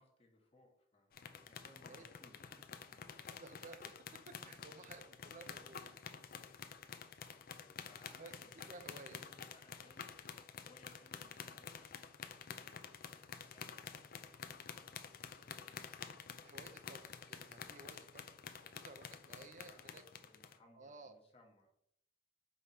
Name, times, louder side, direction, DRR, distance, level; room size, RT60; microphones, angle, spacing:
voice 1, 0.0-3.4 4.9-5.2 6.3-6.6 7.5-8.8 9.1-14.2 14.7-17.1 18.5-19.0 19.3-21.7, left 2 dB, 35° left, 1 dB, 1.3 m, -67 dB
sound 1, 1.1-20.6, left 7 dB, 50° left, 0.5 m, -50 dB
voice 2, 3.4-3.9 4.3-6.0 8.2-8.3 8.7-9.2 16.4-20.0 20.8-21.1, right 3 dB, 40° right, 8 dB, 0.6 m, -55 dB
5.5 x 4.8 x 4.2 m, 0.73 s
head